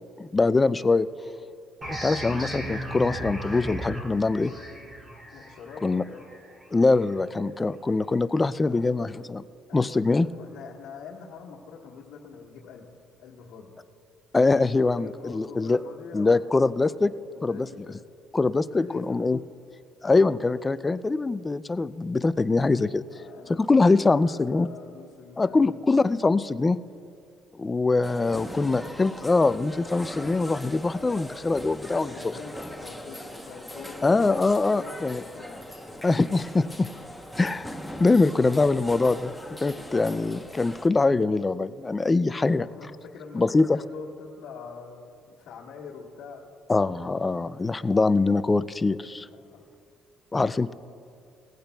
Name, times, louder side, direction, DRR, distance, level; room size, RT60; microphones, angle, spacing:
voice 1, 0.2-1.1 1.9-4.5 5.8-6.0 6.7-9.4 9.7-10.3 14.3-15.8 16.1-17.1 17.4-17.7 18.3-19.4 20.0-23.0 23.5-24.7 25.4-26.8 27.6-32.1 34.0-35.2 36.0-36.9 37.4-37.7 38.0-39.3 39.6-42.7 43.3-43.8 46.7-49.3 50.3-50.7, left 3 dB, 15° left, 14 dB, 0.3 m, -23 dB
sound 1, 1.8-7.1, right 1 dB, 20° right, 2.7 m, -36 dB
voice 2, 5.3-6.3 8.6-8.8 9.7-12.9 13.2-13.7 15.0-16.5 17.3-18.0 18.7-19.2 23.1-25.8 31.9-34.1 34.4-35.6 35.9-36.1 42.4-46.4 49.3-49.6, left 5 dB, 70° left, -7 dB, 1.6 m, -44 dB
sound 2, 28.0-40.9, equal, ahead, 0.9 m, -40 dB
20.0 x 15.5 x 2.3 m, 2.4 s
cardioid pair, 135°, 0 cm